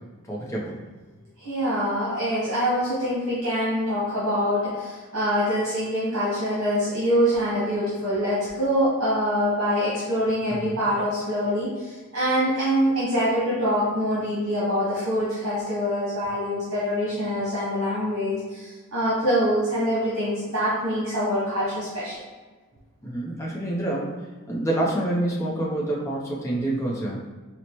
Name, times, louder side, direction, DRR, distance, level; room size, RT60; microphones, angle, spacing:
voice 1, 0.3-0.7 10.5-10.8 23.0-24.2 24.5-27.2, right 1 dB, 15° left, -4 dB, 0.5 m, -27 dB
voice 2, 1.4-22.1, equal, 65° right, -9 dB, 1.1 m, -25 dB
4.3 x 2.0 x 2.9 m, 1.3 s
head